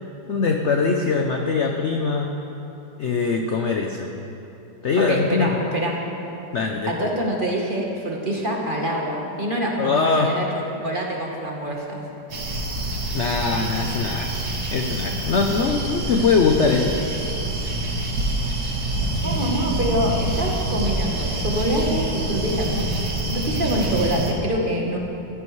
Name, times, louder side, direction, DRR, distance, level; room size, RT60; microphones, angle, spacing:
voice 1, 0.3-2.3 3.0-4.1 4.8-5.5 6.5-7.1 9.8-10.4 13.1-14.3 14.7-17.0, left 4 dB, 60° left, 2 dB, 0.7 m, -22 dB
voice 2, 5.0-6.0 6.9-12.1 19.2-22.9 23.3-25.0, right 1 dB, 30° right, -2 dB, 1.3 m, -25 dB
sound 1, 12.3-24.3, right 1 dB, 55° right, 2.1 m, -26 dB
15.0 x 14.0 x 3.2 m, 2.9 s
omnidirectional pair, 2.0 m